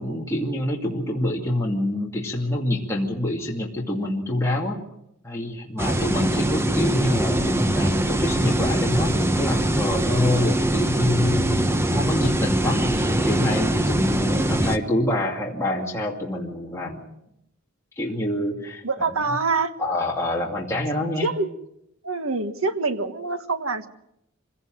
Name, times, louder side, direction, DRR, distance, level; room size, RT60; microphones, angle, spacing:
voice 1, 0.0-4.8 5.2-17.1 18.0-18.8 19.8-21.3, left 1 dB, 15° left, -3 dB, 2.5 m, -26 dB
sound 1, 5.8-14.8, right 1 dB, 10° right, 1.0 m, -23 dB
voice 2, 18.8-19.7 21.2-21.5 22.0-23.9, right 3 dB, 85° right, 9 dB, 1.6 m, -25 dB
25.5 x 17.0 x 7.7 m, 0.82 s
head